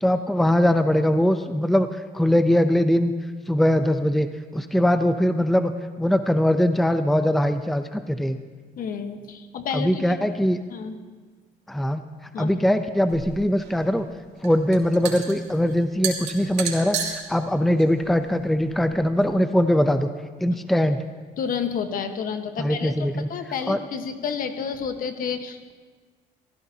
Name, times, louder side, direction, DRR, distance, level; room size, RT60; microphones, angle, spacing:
voice 1, 0.0-3.1 3.5-4.3 4.5-5.7 6.0-8.4 9.7-10.6 11.7-12.0 12.4-14.1 14.4-20.1 20.4-21.0 22.6-23.3 23.7-23.8, equal, ahead, 9 dB, 0.6 m, -21 dB
voice 2, 8.8-10.2 10.7-11.0 12.3-12.5 21.4-25.7, left 6 dB, 55° left, 7 dB, 1.3 m, -30 dB
sound 1, 13.1-19.2, right 8 dB, 90° right, 2.6 m, -34 dB
23.5 x 15.0 x 2.8 m, 1.5 s
cardioid pair, 110°, 17 cm